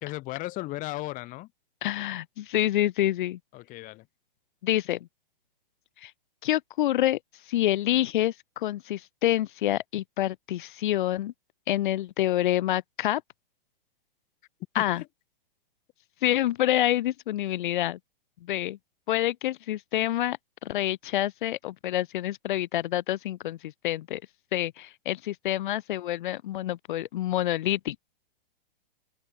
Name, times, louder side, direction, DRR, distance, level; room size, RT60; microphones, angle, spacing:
voice 1, 0.0-1.5 3.5-4.1 14.7-15.1, left 19 dB, 25° left, 1.3 m, -36 dB
voice 2, 1.8-3.4 4.6-5.1 6.0-6.1 6.4-7.2 7.5-11.3 11.7-13.2 14.7-15.0 16.2-18.0 18.4-18.8 19.1-24.2 24.5-28.0, left 13 dB, 55° left, 1.1 m, -27 dB
open air
hypercardioid pair, 130°, 29 cm